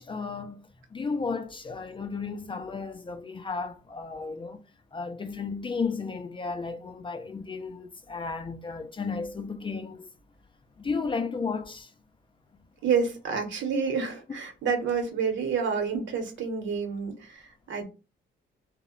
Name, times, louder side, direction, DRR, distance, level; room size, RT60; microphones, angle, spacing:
voice 1, 0.0-4.6 4.9-10.1 10.8-11.9 13.6-13.7, left 4 dB, 25° left, 0.3 m, -34 dB
voice 2, 12.8-17.8, right 6 dB, 70° right, 0.9 m, -29 dB
2.1 x 2.0 x 3.6 m
cardioid pair, 90°, 20 cm